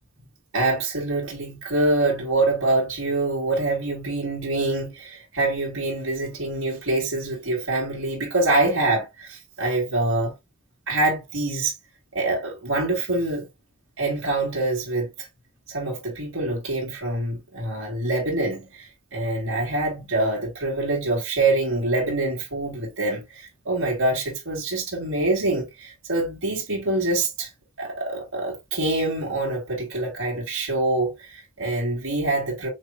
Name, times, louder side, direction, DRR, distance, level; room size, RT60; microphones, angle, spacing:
voice 1, 0.5-10.3 10.9-11.7 12.1-13.5 14.0-15.3 15.7-27.5 27.8-32.7, right 2 dB, 65° right, 2.7 m, -25 dB
6.4 x 3.0 x 2.2 m
head